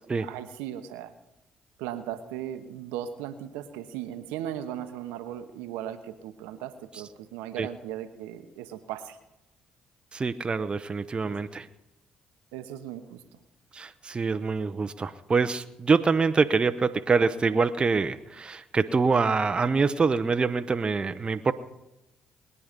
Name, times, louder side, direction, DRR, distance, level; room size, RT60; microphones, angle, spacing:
voice 1, 0.2-1.1 1.8-9.2 11.3-11.4 12.5-13.2, right 11 dB, 85° right, 8 dB, 1.0 m, -37 dB
voice 2, 10.1-11.7 13.7-21.5, right 4 dB, 35° right, 9 dB, 0.8 m, -25 dB
21.0 x 9.6 x 5.2 m, 0.91 s
supercardioid pair, 55°, 3 cm